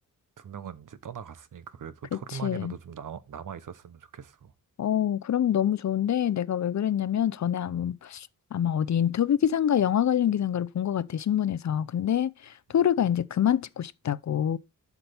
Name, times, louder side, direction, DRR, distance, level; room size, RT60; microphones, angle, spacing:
voice 1, 0.4-4.5, right 7 dB, 65° right, 1.0 m, -41 dB
voice 2, 2.4-2.7 4.8-14.6, left 10 dB, 55° left, 0.6 m, -26 dB
12.0 x 5.9 x 3.4 m
wide cardioid pair, 180°, 34 cm